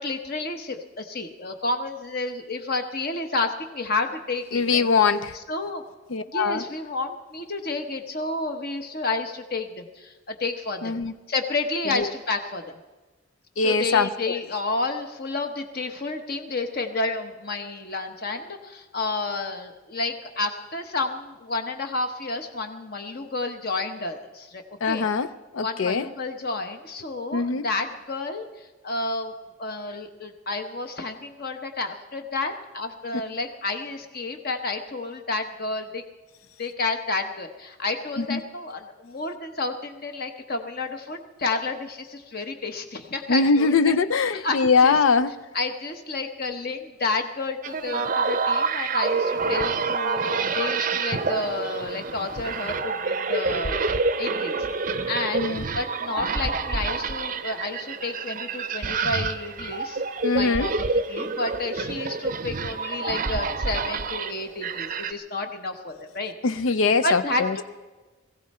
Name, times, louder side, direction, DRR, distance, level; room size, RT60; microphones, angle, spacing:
voice 1, 0.0-4.9 5.5-5.8 6.3-11.0 11.3-12.6 13.6-25.0 25.6-29.3 29.6-36.0 36.6-44.0 44.3-45.0 45.5-53.8 54.2-60.0 60.3-60.7 61.1-66.3 67.0-67.6, left 3 dB, 45° left, 6 dB, 1.0 m, -30 dB
voice 2, 4.5-5.4 6.1-6.6 10.8-11.1 11.9-12.1 13.6-14.4 24.8-26.1 27.3-27.7 38.2-38.4 43.3-45.3 55.3-55.6 60.2-60.7 66.4-67.6, left 4 dB, 75° left, 13 dB, 0.5 m, -22 dB
sound 1, 47.6-65.1, right 4 dB, 40° right, 0.6 m, -27 dB
20.5 x 15.0 x 4.3 m, 1.2 s
head